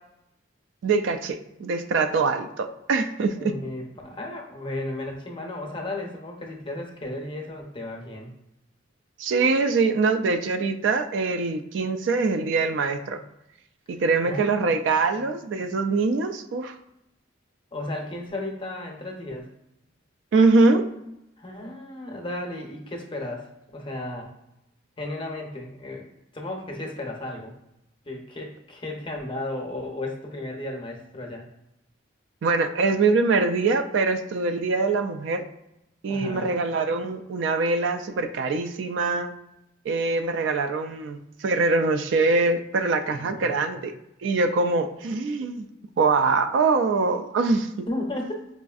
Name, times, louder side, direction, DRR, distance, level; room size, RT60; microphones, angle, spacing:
voice 1, 0.8-3.5 9.2-13.2 13.9-16.7 20.3-20.9 32.4-35.4 36.0-39.3 39.8-43.9 44.2-45.7 46.0-47.9, right 3 dB, 75° right, 8 dB, 0.3 m, -23 dB
voice 2, 3.4-8.3 14.2-14.6 15.1-15.2 17.7-19.5 21.4-24.3 25.0-27.5 28.1-31.5 36.1-36.5 43.1-43.6 47.9-48.5, left 1 dB, 25° left, 1 dB, 0.6 m, -34 dB
4.9 x 2.5 x 2.3 m, 0.86 s
head